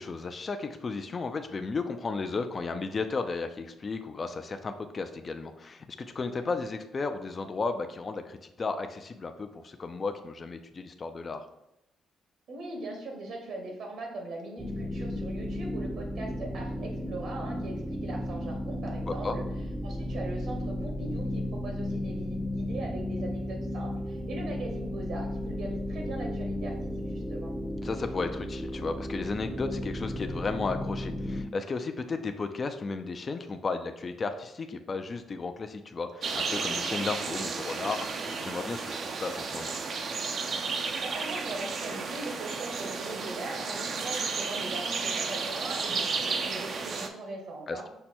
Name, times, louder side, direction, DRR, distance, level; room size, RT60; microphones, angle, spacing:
voice 1, 0.0-11.4 19.1-19.4 27.8-39.8 47.7-47.9, left 4 dB, 35° left, 7 dB, 0.4 m, -34 dB
voice 2, 12.5-19.4 19.8-27.5 41.0-47.8, right 2 dB, 70° right, 1 dB, 1.2 m, -40 dB
sound 1, 14.6-31.4, left 1 dB, 5° right, 0.6 m, -34 dB
sound 2, 36.2-47.1, right 4 dB, 55° right, 0.5 m, -33 dB
5.6 x 2.2 x 4.3 m, 0.85 s
cardioid pair, 90°, 0 cm